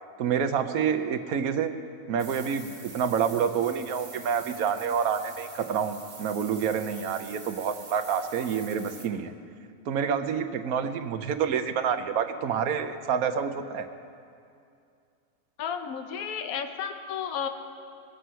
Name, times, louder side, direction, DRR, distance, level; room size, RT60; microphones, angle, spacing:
voice 1, 0.2-1.7 2.1-9.3 9.9-13.9, right 7 dB, 70° right, 9 dB, 1.2 m, -28 dB
sound 1, 2.2-9.1, right 3 dB, 30° right, 0.9 m, -46 dB
voice 2, 15.6-17.5, left 7 dB, 70° left, 7 dB, 1.3 m, -32 dB
21.5 x 7.7 x 5.6 m, 2.4 s
omnidirectional pair, 1.6 m